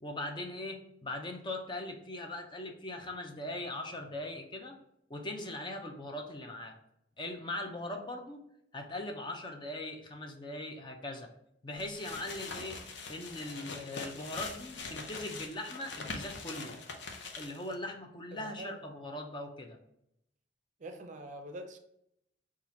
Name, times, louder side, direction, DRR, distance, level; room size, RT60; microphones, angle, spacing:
voice 1, 0.0-4.8 5.1-6.8 7.2-8.4 8.7-11.3 11.6-12.8 13.1-16.8 17.3-19.8, left 1 dB, 25° left, 4 dB, 0.5 m, -40 dB
sound 1, 11.8-17.7, left 4 dB, 90° left, 0.7 m, -43 dB
voice 2, 18.3-18.9 20.8-21.8, right 1 dB, 45° right, 6 dB, 0.5 m, -45 dB
4.1 x 2.4 x 4.2 m, 0.78 s
head